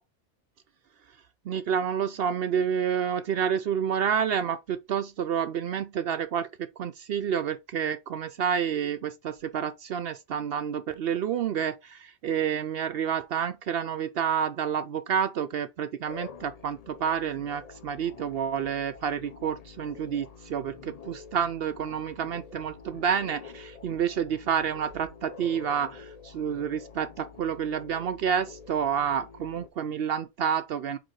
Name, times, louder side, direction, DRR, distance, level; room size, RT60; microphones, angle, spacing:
voice 1, 1.5-31.0, right 8 dB, 65° right, 0.6 m, -29 dB
sound 1, 16.0-29.7, left 6 dB, 50° left, 0.4 m, -47 dB
5.1 x 4.7 x 4.6 m
omnidirectional pair, 1.3 m